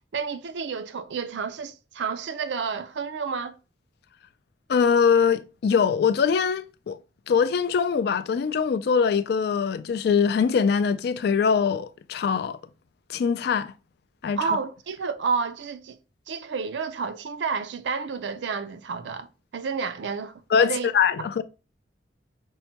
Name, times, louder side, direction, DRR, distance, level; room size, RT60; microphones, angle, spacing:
voice 1, 0.1-3.6 14.4-16.0 16.3-19.3 19.5-20.9, right 5 dB, 90° right, 0.4 m, -30 dB
voice 2, 4.7-7.0 7.3-12.6 13.1-13.7 14.2-14.4 20.5-21.4, left 6 dB, 60° left, 0.3 m, -22 dB
5.5 x 2.1 x 2.8 m
head